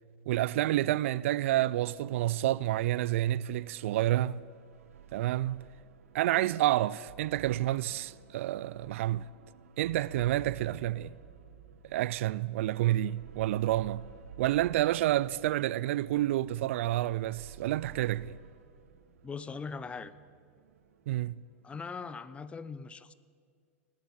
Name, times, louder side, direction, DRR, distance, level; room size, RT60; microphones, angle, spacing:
voice 1, 0.3-4.4 5.1-5.6 6.1-9.3 9.8-11.1 11.9-14.1 14.4-18.4 21.1-21.4, right 14 dB, 70° right, 0.3 m, -29 dB
sound 1, 1.9-21.7, right 8 dB, 85° right, 0.8 m, -54 dB
voice 2, 19.2-20.1 21.6-23.1, left 5 dB, 15° left, 0.5 m, -40 dB
19.0 x 7.7 x 7.2 m
hypercardioid pair, 115°, 7 cm